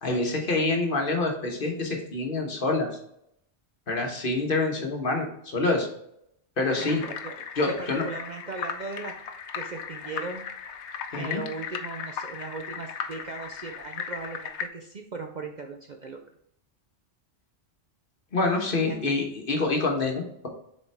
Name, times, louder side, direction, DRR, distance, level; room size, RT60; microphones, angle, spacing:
voice 1, 0.0-2.9 3.9-5.9 6.6-7.0 7.6-8.1 11.1-11.4 18.3-20.5, left 3 dB, 50° left, 2 dB, 1.3 m, -26 dB
sound 1, 6.6-14.7, left 7 dB, 75° left, 0.9 m, -37 dB
voice 2, 6.8-7.3 7.6-9.1 9.5-10.5 11.1-16.2 18.9-19.1, right 4 dB, 50° right, 3 dB, 0.6 m, -38 dB
7.0 x 4.3 x 3.3 m, 0.73 s
omnidirectional pair, 1.2 m